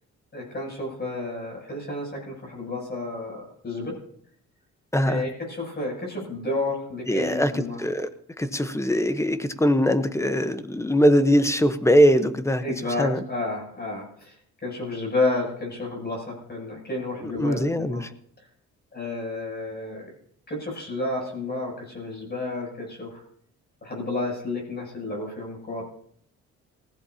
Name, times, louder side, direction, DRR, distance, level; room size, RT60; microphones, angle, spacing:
voice 1, 0.3-3.9 5.0-7.8 12.6-14.4 14.6-18.0 18.9-20.1 20.5-23.2 23.8-25.8, left 2 dB, 35° left, -2 dB, 7.8 m, -31 dB
voice 2, 4.9-5.2 7.1-8.1 8.4-12.6 13.0-13.2 17.2-18.0, equal, 10° left, 11 dB, 1.0 m, -21 dB
19.5 x 15.5 x 2.8 m, 0.65 s
cardioid pair, 90°, 30 cm